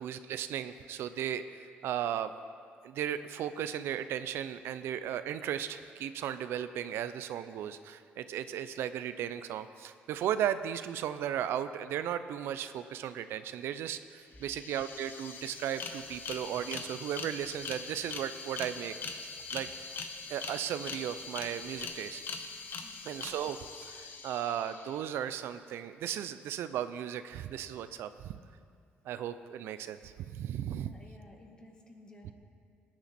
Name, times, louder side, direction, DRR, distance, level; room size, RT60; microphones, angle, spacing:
voice 1, 0.0-1.4 1.8-2.3 2.8-18.9 19.2-19.7 20.3-22.5 23.1-28.4 29.1-30.9, right 10 dB, 85° right, 12 dB, 0.5 m, -36 dB
sound 1, 14.1-14.2 14.4-25.2, left 5 dB, 55° left, 1.1 m, -42 dB
voice 2, 30.7-32.3, left 1 dB, 20° left, 3 dB, 1.6 m, -54 dB
19.0 x 10.5 x 4.3 m, 2.2 s
cardioid pair, 125°, 4 cm